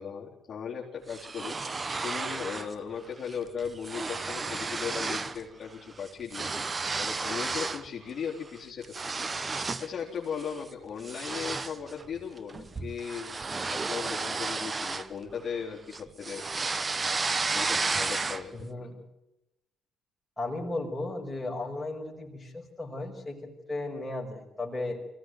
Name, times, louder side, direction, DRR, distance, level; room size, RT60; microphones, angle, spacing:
voice 1, 0.0-13.4 13.7-16.8 17.5-18.9, left 7 dB, 40° left, -3 dB, 3.9 m, -38 dB
sound 1, 1.1-2.7 3.1-3.3 3.6-5.4 5.7-7.9 8.3-9.9 10.4-10.6 11.0-15.6 15.9-18.6, right 4 dB, 25° right, 0.9 m, -32 dB
voice 2, 18.5-19.0 20.4-23.4 23.7-25.0, left 2 dB, 5° left, -1 dB, 5.5 m, -35 dB
24.0 x 16.5 x 9.4 m, 0.93 s
cardioid pair, 115°, 0 cm